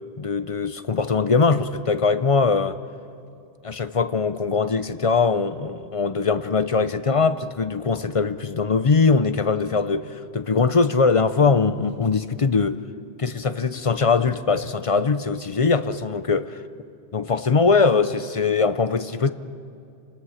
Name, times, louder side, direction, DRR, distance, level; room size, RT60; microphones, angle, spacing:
voice 1, 0.2-2.8 3.6-12.8 13.2-16.6 17.1-19.3, left 4 dB, 40° left, 12 dB, 0.6 m, -21 dB
30.0 x 19.0 x 6.5 m, 2.5 s
omnidirectional pair, 1.1 m